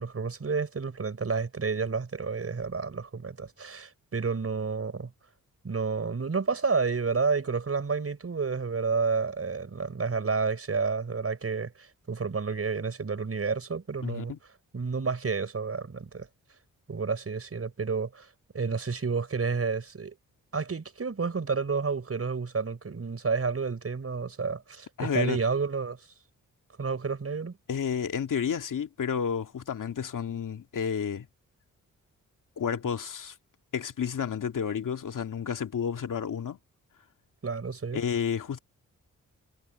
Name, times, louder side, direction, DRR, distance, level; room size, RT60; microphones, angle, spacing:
voice 1, 0.0-5.1 5.6-14.3 14.7-16.3 16.9-18.3 18.5-20.2 20.5-26.0 26.8-27.6 37.4-38.0, right 5 dB, 45° right, 5.2 m, -30 dB
voice 2, 14.0-14.4 25.0-25.4 27.7-31.3 32.6-33.4 33.7-36.6 37.9-38.6, left 7 dB, 65° left, 2.4 m, -31 dB
cardioid pair, 60°, 33 cm